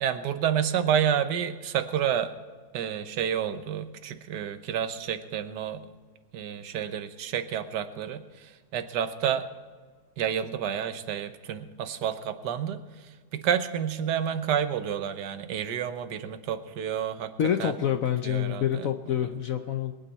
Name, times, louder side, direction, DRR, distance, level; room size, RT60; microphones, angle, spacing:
voice 1, 0.0-2.3 2.7-5.9 6.3-9.4 10.2-17.3 17.6-17.7 18.2-18.9, right 9 dB, 65° right, 9 dB, 1.4 m, -29 dB
voice 2, 17.4-19.9, left 9 dB, 70° left, 7 dB, 0.8 m, -27 dB
22.0 x 9.3 x 4.2 m, 1.5 s
omnidirectional pair, 2.0 m